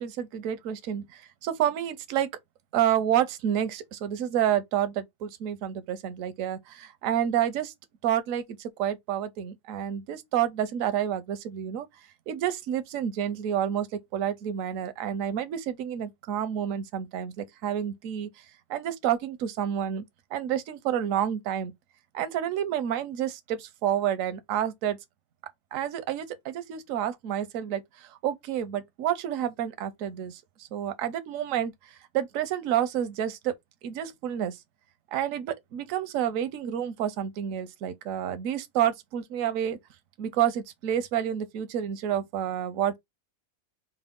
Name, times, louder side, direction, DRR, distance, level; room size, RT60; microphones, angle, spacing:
voice 1, 0.0-2.3 2.7-7.7 8.0-11.9 12.3-13.9 14.1-18.3 18.7-20.0 20.3-21.7 22.1-25.0 25.7-30.4 30.7-31.7 32.1-33.5 33.8-34.6 35.1-39.8 40.2-43.0, right 10 dB, 70° right, 0.8 m, -29 dB
4.6 x 2.1 x 3.6 m
omnidirectional pair, 2.0 m